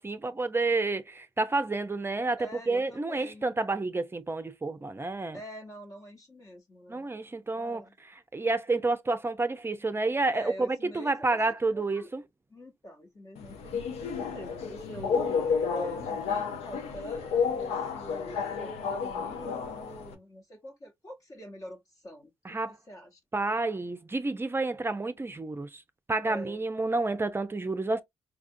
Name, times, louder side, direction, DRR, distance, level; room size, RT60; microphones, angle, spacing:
voice 1, 0.0-5.4 6.9-7.8 8.3-12.2 22.4-22.8 23.3-25.8 26.1-28.0, right 3 dB, 20° right, 0.5 m, -29 dB
voice 2, 2.4-3.5 5.3-7.1 7.5-8.0 10.3-12.1 12.5-14.1 14.3-15.4 15.7-22.3 22.6-23.2 26.2-26.6, equal, 35° left, 1.0 m, -45 dB
Subway metro underground, 13.4-20.1, left 6 dB, 85° left, 0.7 m, -31 dB
4.6 x 2.4 x 2.6 m
supercardioid pair, 55°, 10 cm